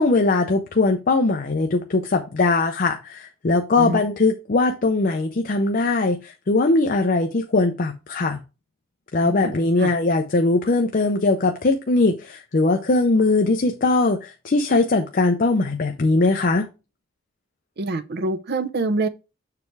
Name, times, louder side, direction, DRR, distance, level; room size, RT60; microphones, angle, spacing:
voice 1, 0.0-8.4 9.1-16.6, left 3 dB, 45° left, 0.5 m, -20 dB
voice 2, 17.8-19.1, right 3 dB, 50° right, 0.6 m, -25 dB
6.8 x 3.2 x 4.6 m
head